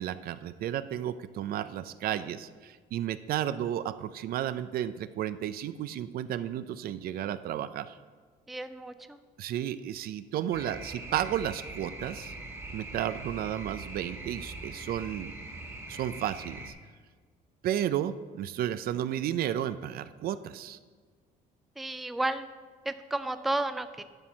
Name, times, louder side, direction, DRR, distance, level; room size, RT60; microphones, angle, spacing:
voice 1, 0.0-8.0 9.4-12.3 12.7-15.3 15.9-16.7 17.6-20.8, right 11 dB, 60° right, 13 dB, 0.4 m, -33 dB
voice 2, 8.5-9.2 21.8-22.5 22.9-24.0, right 2 dB, ahead, 10 dB, 0.3 m, -32 dB
sound 1, 10.5-16.7, right 2 dB, 15° right, 1.5 m, -42 dB
11.0 x 4.4 x 6.1 m, 1.5 s
cardioid pair, 110°, 17 cm